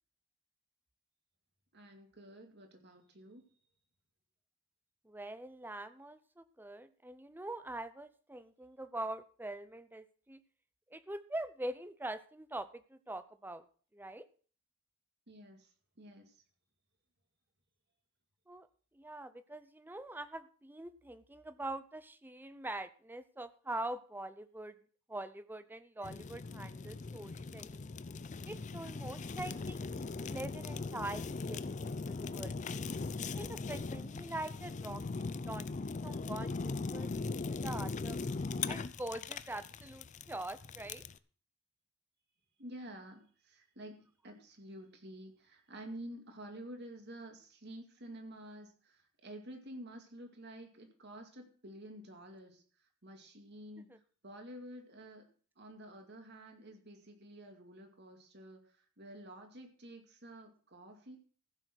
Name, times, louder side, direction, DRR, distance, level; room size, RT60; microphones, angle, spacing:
voice 1, 1.7-3.4 15.3-15.7 16.0-16.4 42.6-52.6 53.0-54.0 54.2-55.3 55.6-58.6 59.0-61.2, right 1 dB, 55° right, 4 dB, 2.4 m, -50 dB
voice 2, 5.0-10.4 10.9-13.7 13.9-14.3 18.5-18.7 18.9-24.8 25.1-27.7 28.5-32.8 33.3-35.0 35.4-35.7 36.0-38.2 38.7-41.0 53.9-54.0, right 1 dB, 10° right, 13 dB, 0.6 m, -44 dB
Fire, 26.0-41.2, left 4 dB, 35° left, 0.5 m, -40 dB
15.0 x 6.6 x 6.2 m, 0.44 s
head